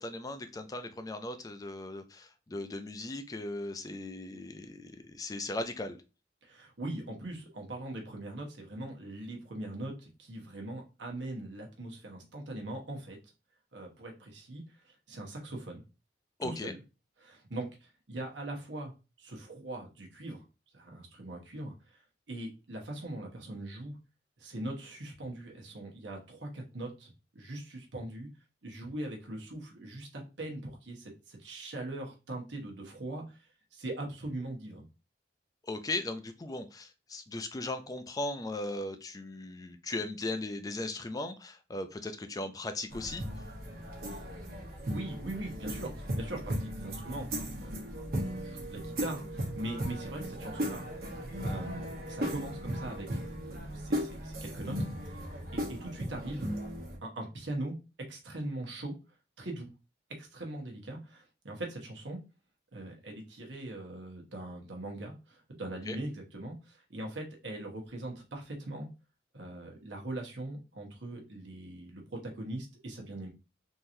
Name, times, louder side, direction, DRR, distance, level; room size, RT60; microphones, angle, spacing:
voice 1, 0.0-6.0 16.4-16.7 35.6-43.2 65.9-66.0, left 2 dB, 20° left, 8 dB, 0.4 m, -38 dB
voice 2, 6.4-13.2 13.7-15.8 16.4-16.8 17.2-18.9 19.2-20.4 20.7-22.0 22.3-24.0 24.4-28.3 28.6-34.9 44.9-50.8 51.4-53.1 53.5-55.2 55.5-56.5 57.0-57.8 58.1-58.9 59.4-59.7 60.1-62.2 62.7-68.9 69.3-73.3, right 1 dB, 80° right, 1 dB, 1.1 m, -41 dB
sound 1, 42.9-57.0, equal, 55° right, 1.0 m, -37 dB
sound 2, 47.9-53.6, right 3 dB, 30° right, 0.7 m, -47 dB
3.7 x 2.9 x 2.6 m, 0.29 s
head